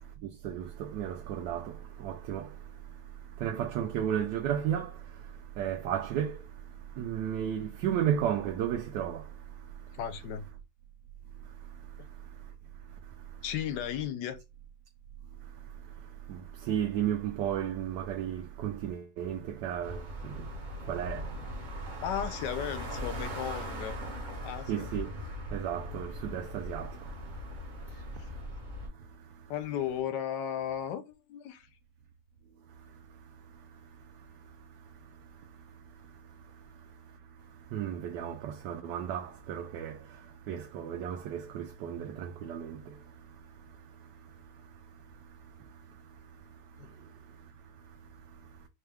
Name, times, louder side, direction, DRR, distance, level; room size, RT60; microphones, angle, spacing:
voice 1, 0.2-2.5 3.4-5.0 5.6-6.4 7.0-9.2 16.3-20.5 20.8-21.3 24.7-25.1 25.5-27.1 37.7-40.0 40.5-42.8, right 9 dB, 80° right, 1.2 m, -33 dB
voice 2, 9.9-10.4 12.0-12.1 13.4-14.4 22.0-23.9 24.4-24.9 29.5-31.7 46.8-46.9, left 9 dB, 90° left, 1.3 m, -35 dB
sound 1, 19.8-28.9, equal, 40° right, 0.7 m, -40 dB
4.3 x 2.3 x 3.3 m
omnidirectional pair, 1.8 m